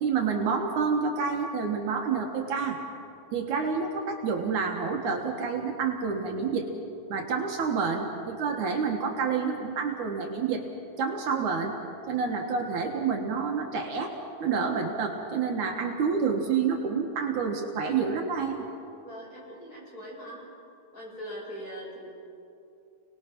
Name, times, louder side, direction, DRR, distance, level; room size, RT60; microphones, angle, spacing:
voice 1, 0.0-2.8 3.3-6.7 7.1-10.6 11.0-11.8 12.1-14.1 14.4-18.7, right 5 dB, 65° right, 2 dB, 2.8 m, -28 dB
voice 2, 19.0-20.4 20.9-22.1, equal, 25° left, -4 dB, 7.1 m, -41 dB
29.5 x 19.5 x 6.1 m, 2.6 s
omnidirectional pair, 3.8 m